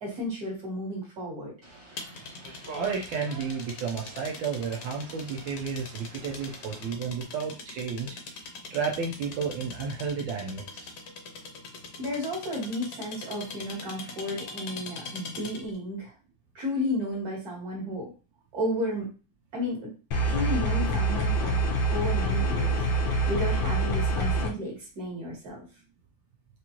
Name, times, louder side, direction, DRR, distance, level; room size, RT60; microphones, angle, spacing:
voice 1, 0.0-1.5 12.0-16.1 16.6-18.1 18.5-19.1 19.5-19.9 20.3-21.6 21.9-25.7, left 1 dB, 55° right, -4 dB, 2.2 m, -33 dB
sound 1, 1.6-6.9, right 2 dB, 30° right, 1.5 m, -47 dB
sound 2, 2.0-15.8, left 4 dB, 65° left, 1.2 m, -42 dB
voice 2, 2.7-8.1 8.7-10.9, right 6 dB, 90° right, 1 dB, 1.5 m, -32 dB
sound 3, 20.1-24.5, right 1 dB, 90° left, 1.5 m, -25 dB
4.9 x 2.5 x 2.9 m, 0.34 s
omnidirectional pair, 2.1 m